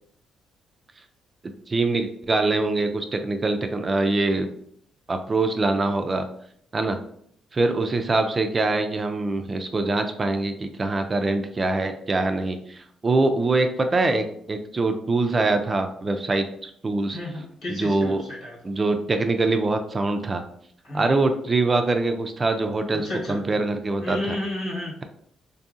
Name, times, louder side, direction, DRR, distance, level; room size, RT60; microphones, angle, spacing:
voice 1, 1.7-4.5 5.1-6.3 6.7-7.0 7.5-17.2 17.7-18.2 18.6-20.4 20.9-24.4, right 2 dB, 30° right, 6 dB, 0.3 m, -24 dB
voice 2, 17.1-18.6 20.8-21.2 22.9-23.4 24.0-24.9, left 1 dB, 70° left, -5 dB, 1.3 m, -32 dB
2.6 x 2.6 x 2.4 m, 0.68 s
cardioid pair, 90°, 0 cm